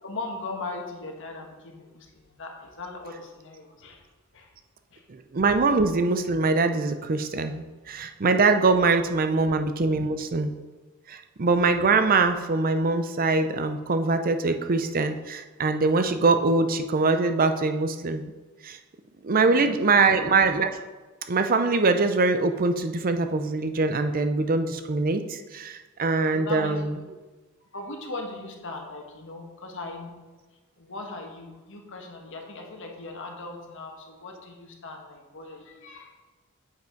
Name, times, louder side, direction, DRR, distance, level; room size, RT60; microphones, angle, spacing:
voice 1, 0.0-4.0 4.3-4.5 4.9-5.0 19.4-20.0 26.3-26.8 27.7-30.2 30.8-36.1, left 3 dB, 60° left, 2 dB, 1.4 m, -39 dB
voice 2, 5.1-10.5 11.1-18.3 18.6-18.8 19.2-20.7 21.3-26.9, right 3 dB, 40° right, 8 dB, 0.5 m, -23 dB
7.7 x 5.9 x 4.5 m, 1.2 s
head